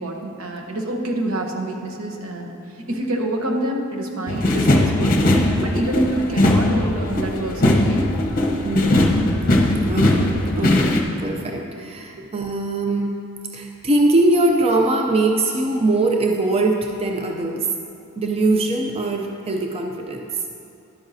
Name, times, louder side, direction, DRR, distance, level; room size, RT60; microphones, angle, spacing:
voice 1, 0.0-2.5 2.9-8.0 8.8-9.0 12.2-12.3, right 1 dB, 75° right, 1 dB, 1.0 m, -27 dB
sound 1, 4.3-11.0, left 1 dB, 40° left, 0.8 m, -19 dB
voice 2, 8.6-9.1 9.9-13.2 13.5-17.7 18.2-20.4, right 2 dB, 30° right, 2 dB, 0.5 m, -22 dB
11.0 x 8.8 x 2.7 m, 2.6 s
head